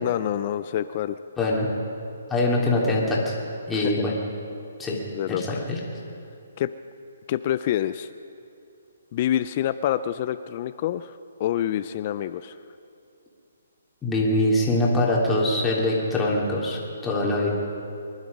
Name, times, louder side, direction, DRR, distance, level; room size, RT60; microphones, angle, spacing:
voice 1, 0.0-1.2 3.7-3.9 5.1-5.6 6.6-6.7 7.3-8.1 9.1-12.6, left 11 dB, 35° left, 13 dB, 0.4 m, -27 dB
voice 2, 1.4-1.7 2.3-3.3 3.7-4.1 4.8-5.0 5.3-5.8 14.0-17.5, left 1 dB, 10° left, -4 dB, 2.8 m, -23 dB
24.0 x 11.5 x 5.3 m, 2.6 s
hypercardioid pair, 160°, 0 cm